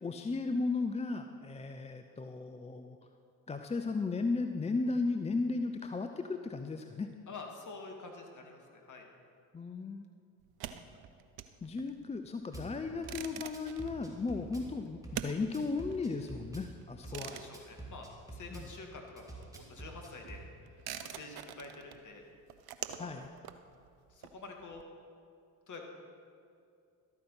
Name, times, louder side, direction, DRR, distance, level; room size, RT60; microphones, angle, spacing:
voice 1, 0.0-3.0 3.5-7.1 9.5-10.0 10.7-10.8 11.6-17.3 18.5-18.7 23.0-23.3, left 3 dB, 15° left, 7 dB, 0.5 m, -35 dB
voice 2, 7.3-9.1 17.0-20.7 21.0-22.3 22.9-23.2 24.1-24.8 25.7-25.8, left 3 dB, 40° left, 2 dB, 2.3 m, -48 dB
sound 1, 10.4-18.8 19.0-24.8, right 10 dB, 55° right, 0.8 m, -46 dB
Drum kit / Bass drum, 12.5-12.7 13.0-14.7 15.0-16.7 17.0-18.7 19.2-20.4, right 2 dB, 5° right, 2.8 m, -47 dB
12.5 x 9.0 x 5.7 m, 2.4 s
hypercardioid pair, 55°, 45 cm